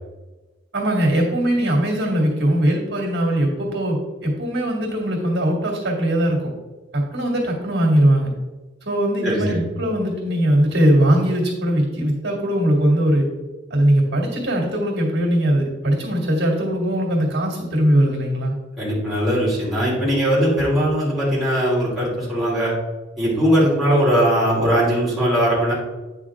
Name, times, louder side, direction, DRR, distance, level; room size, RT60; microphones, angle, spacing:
voice 1, 0.7-6.5 6.9-8.3 8.8-13.2 13.7-18.5, right 1 dB, 60° right, -2 dB, 2.4 m, -20 dB
voice 2, 9.2-9.7 18.8-22.7 23.2-25.7, equal, ahead, -9 dB, 2.9 m, -19 dB
9.0 x 6.1 x 3.7 m, 1.2 s
head